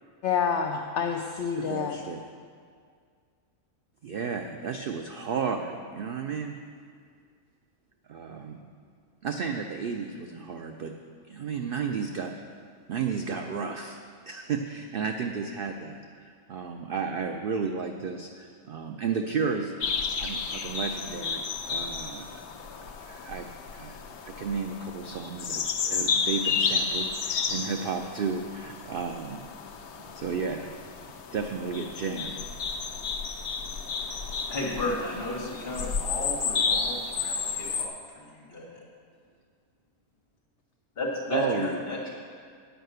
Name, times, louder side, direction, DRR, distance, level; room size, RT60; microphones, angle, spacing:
voice 1, 0.2-2.0, left 7 dB, 65° left, 4 dB, 0.8 m, -28 dB
voice 2, 1.6-2.2 4.0-6.6 8.1-8.6 9.2-10.9 11.3-12.3 12.9-14.0 14.3-19.8 20.2-22.3 23.0-23.5 23.7-23.9 24.2-29.4 30.1-30.7 31.3-32.4 41.3-41.8, right 5 dB, 80° right, 4 dB, 0.5 m, -33 dB
sound 1, 19.8-37.9, left 5 dB, 85° left, 1.2 m, -32 dB
voice 3, 34.5-38.6 41.0-42.1, left 1 dB, 45° left, -3 dB, 2.0 m, -33 dB
9.0 x 5.6 x 7.8 m, 2.1 s
omnidirectional pair, 1.5 m